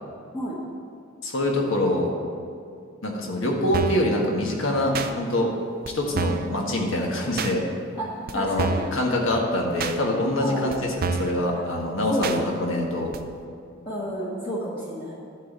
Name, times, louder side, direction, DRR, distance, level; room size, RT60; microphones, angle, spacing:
voice 1, 1.2-2.1 3.0-5.5 5.9-7.6 8.3-13.1, left 1 dB, 70° left, 0 dB, 1.5 m, -25 dB
sound 1, 3.7-4.1 4.9-5.1 5.8-5.9 6.1-6.5 7.4-7.5 8.3-8.4 8.6-8.9 9.8-10.0 10.7-10.8 11.0-11.4 12.2-12.4 13.1-13.2, right 4 dB, 45° right, 0.5 m, -27 dB
voice 2, 4.9-5.2 7.9-8.1 8.3-8.8 10.3-10.7 11.5-11.6 12.1-12.8 13.8-15.1, equal, 25° left, -7 dB, 1.3 m, -30 dB
11.0 x 4.2 x 7.5 m, 2.4 s
head